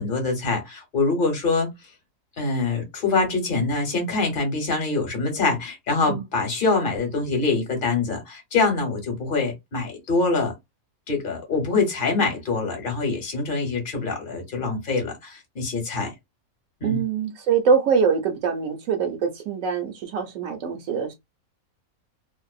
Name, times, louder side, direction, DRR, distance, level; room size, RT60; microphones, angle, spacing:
voice 1, 0.0-1.7 2.4-10.5 11.1-16.1 16.8-17.0, left 3 dB, 40° left, 1.0 m, -24 dB
voice 2, 16.8-21.1, right 6 dB, 70° right, 0.9 m, -23 dB
2.6 x 2.0 x 2.3 m
omnidirectional pair, 1.6 m